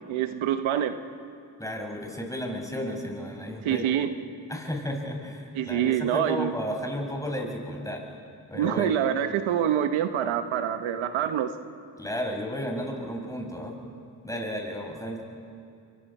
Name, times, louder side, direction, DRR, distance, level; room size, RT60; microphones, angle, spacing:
voice 1, 0.1-0.9 3.6-4.1 5.5-6.5 8.5-11.5, right 10 dB, 90° right, 9 dB, 1.1 m, -26 dB
voice 2, 1.6-3.9 4.5-8.0 8.5-8.9 12.0-13.8 14.2-15.2, equal, 5° left, 1 dB, 6.1 m, -33 dB
28.5 x 23.5 x 5.5 m, 2.3 s
supercardioid pair, 40°, 46 cm